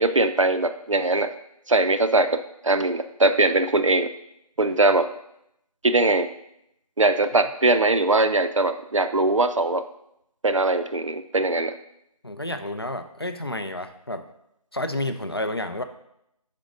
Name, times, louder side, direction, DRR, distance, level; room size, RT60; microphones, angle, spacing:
voice 1, 0.0-1.3 1.7-4.1 4.6-5.1 5.8-6.3 7.0-9.8 10.4-11.7, right 2 dB, 55° right, 10 dB, 0.5 m, -21 dB
voice 2, 12.2-14.3 14.7-15.8, left 1 dB, 40° left, 8 dB, 0.4 m, -30 dB
5.2 x 5.2 x 6.1 m, 0.79 s
figure-of-eight pair, 175°, 20 cm